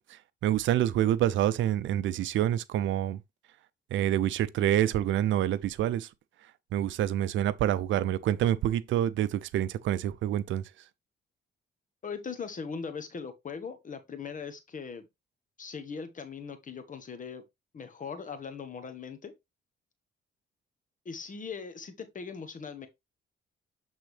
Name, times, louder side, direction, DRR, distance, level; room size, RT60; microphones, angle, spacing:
voice 1, 0.1-3.2 3.9-6.1 6.7-10.6, right 12 dB, 75° right, 0.5 m, -27 dB
voice 2, 12.0-15.0 15.6-17.4 17.7-19.3 21.0-22.9, left 5 dB, 40° left, 1.3 m, -40 dB
8.2 x 3.9 x 3.3 m
cardioid pair, 90°, 20 cm